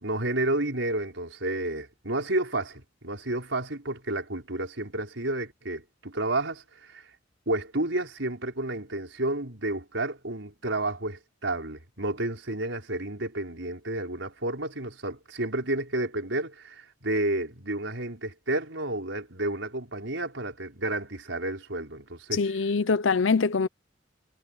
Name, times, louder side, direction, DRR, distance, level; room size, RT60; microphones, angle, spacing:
voice 1, 0.0-7.1 7.5-22.4, right 2 dB, 75° right, 5.0 m, -31 dB
voice 2, 22.3-23.7, left 4 dB, 90° left, 0.7 m, -24 dB
head